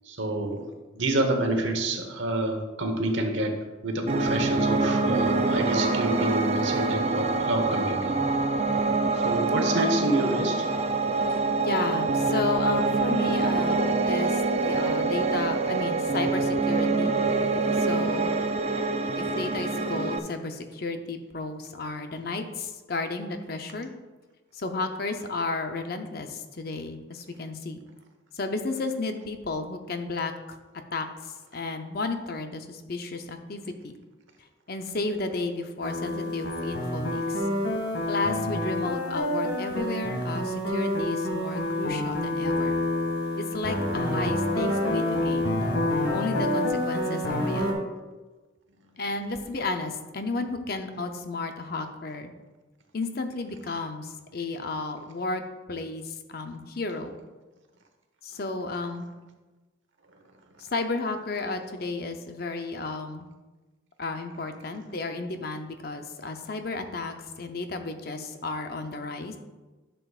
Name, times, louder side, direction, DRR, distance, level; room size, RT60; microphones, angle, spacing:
voice 1, 0.1-0.7 0.9-3.6 3.8-8.2 9.2-10.7, right 1 dB, 70° right, 4 dB, 1.1 m, -28 dB
Piano, 4.1-20.2, right 3 dB, 30° right, 0.4 m, -25 dB
voice 2, 11.6-17.1 17.7-18.3 19.2-23.9 24.5-27.8 28.3-30.6 30.9-33.9 34.7-37.5 38.1-42.8 43.4-45.6 46.1-47.8 49.0-52.3 52.9-55.4 55.7-57.2 58.2-59.1 60.7-63.3 64.0-69.4, left 3 dB, 50° left, 6 dB, 0.6 m, -33 dB
sound 1, 35.8-47.7, left 1 dB, 75° left, 2.0 m, -28 dB
11.0 x 6.9 x 2.4 m, 1.2 s
head